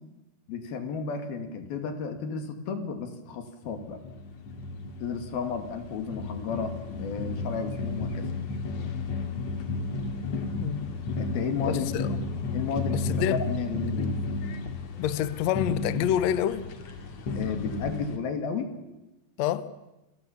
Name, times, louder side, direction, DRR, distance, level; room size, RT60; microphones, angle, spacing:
voice 1, 0.5-4.0 5.0-6.7 7.0-8.3 11.2-12.1 12.5-13.0 13.3-14.2 17.3-18.7, left 5 dB, 90° left, 4.2 m, -33 dB
sound 1, 3.6-18.2, left 3 dB, 50° left, 2.9 m, -33 dB
voice 2, 10.6-10.9 11.6-12.1 12.9-13.4 15.0-16.7 19.4-19.7, left 11 dB, 65° left, 1.8 m, -27 dB
29.5 x 22.0 x 7.3 m
omnidirectional pair, 4.2 m